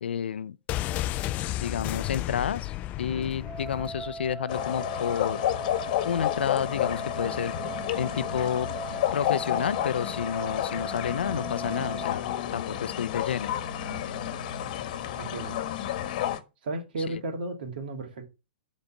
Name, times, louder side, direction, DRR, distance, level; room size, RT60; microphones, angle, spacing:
voice 1, 0.0-0.6 1.6-5.4 6.0-7.5 7.9-8.7 9.1-12.2 12.5-13.5 17.1-17.2, left 8 dB, 85° left, 0.5 m, -30 dB
sound 1, 0.7-4.5 4.7-4.8, left 14 dB, 25° left, 0.4 m, -33 dB
sound 2, 3.4-12.1, right 3 dB, 20° right, 2.3 m, -39 dB
sound 3, 4.5-16.4, left 11 dB, 50° left, 1.2 m, -31 dB
voice 2, 15.2-15.6 16.6-18.3, right 2 dB, 65° right, 2.5 m, -34 dB
10.5 x 4.2 x 5.8 m
hypercardioid pair, 140°, 6 cm